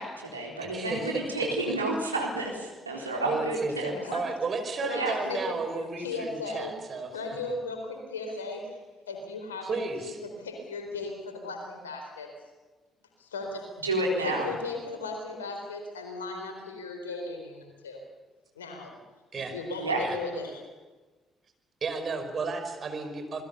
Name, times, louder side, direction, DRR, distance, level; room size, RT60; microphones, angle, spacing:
voice 1, 0.0-3.9 4.9-5.2 13.8-14.5 19.8-20.0, right 2 dB, 90° right, 0 dB, 4.0 m, -30 dB
voice 2, 0.7-1.8 3.2-7.1 9.6-10.2 19.3-19.6 20.0-20.2 21.8-23.4, right 4 dB, 45° right, 6 dB, 5.3 m, -33 dB
voice 3, 4.8-6.8 7.1-8.7 9.1-12.3 13.2-13.7 14.2-18.0 18.5-19.0 19.3-20.6, left 3 dB, 80° left, 3 dB, 4.3 m, -37 dB
28.0 x 21.0 x 7.1 m, 1.3 s
figure-of-eight pair, 45°, 0 cm